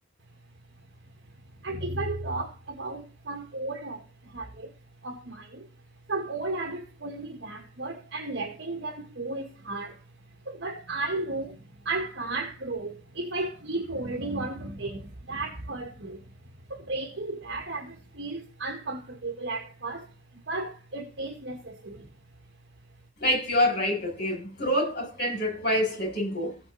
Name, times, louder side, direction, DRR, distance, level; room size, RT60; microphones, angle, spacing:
voice 1, 1.6-4.7 5.0-5.7 6.1-10.0 10.5-16.3 16.7-22.1, right 2 dB, 65° right, 1.8 m, -34 dB
voice 2, 23.2-26.5, left 1 dB, 55° left, 7.5 m, -26 dB
15.5 x 8.6 x 4.1 m
head